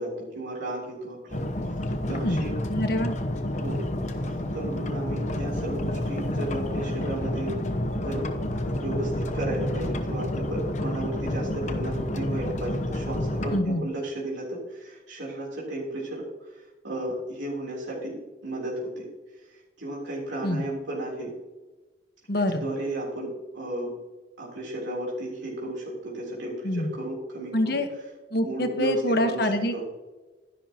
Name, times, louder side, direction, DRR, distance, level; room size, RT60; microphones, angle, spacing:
voice 1, 0.0-1.4 2.1-2.5 3.5-3.9 4.2-7.5 8.0-8.3 8.7-19.1 19.4-21.3 22.5-23.9 24.4-27.8 28.4-29.5 29.7-29.8, right 1 dB, 90° right, -5 dB, 3.4 m, -34 dB
sound 1, 1.3-13.6, left 1 dB, 40° left, 0.9 m, -29 dB
voice 2, 2.1-2.4 2.7-3.1 13.5-13.8 20.4-20.6 22.3-22.6 26.6-26.9 27.5-27.9 28.3-29.8, left 1 dB, 55° left, 6 dB, 1.3 m, -25 dB
12.5 x 11.0 x 2.9 m, 1.2 s
head